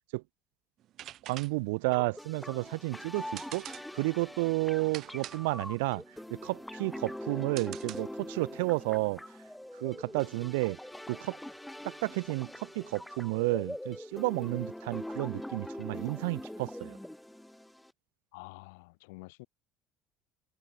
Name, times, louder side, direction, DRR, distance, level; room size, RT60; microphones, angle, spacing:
sound 1, 0.8-8.4, right 13 dB, 55° right, 3.1 m, -47 dB
voice 1, 1.2-6.0 6.3-9.2 9.8-10.8 11.1-11.4 11.8-17.0, right 26 dB, 90° right, 0.6 m, -32 dB
sound 2, 1.9-17.9, left 1 dB, 5° left, 5.7 m, -43 dB
voice 2, 18.3-19.5, left 26 dB, 90° left, 7.7 m, -48 dB
supercardioid pair, 100°, 0 cm